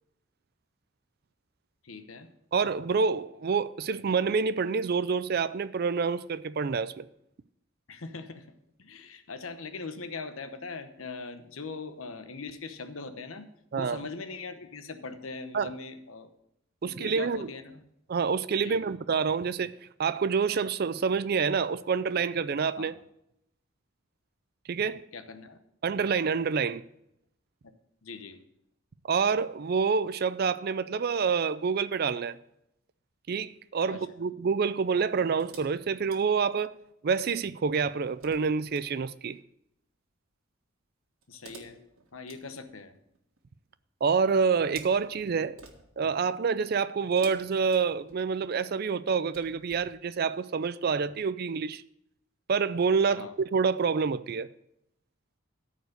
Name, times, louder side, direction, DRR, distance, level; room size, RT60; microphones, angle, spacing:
voice 1, 1.8-2.3 7.9-8.5 8.8-13.5 13.7-16.3 16.8-17.8 18.6-18.8 22.8-22.9 25.1-25.6 28.0-28.4 33.9-34.2 41.3-41.8 42.1-43.0 53.1-53.3, left 4 dB, 85° left, 0.9 m, -41 dB
voice 2, 2.5-7.1 13.7-14.0 15.5-15.7 16.8-17.5 18.1-19.7 20.0-22.9 24.7-25.0 25.8-26.8 29.0-32.4 33.3-36.7 37.0-39.4 44.0-45.5 46.0-51.8 52.5-54.5, right 5 dB, 50° right, 0.4 m, -27 dB
sound 1, 35.4-36.9 37.7-38.9 41.2-43.4 44.4-46.2 47.1-48.5 49.1-49.9, right 3 dB, 85° right, 1.7 m, -52 dB
13.5 x 4.7 x 6.5 m
head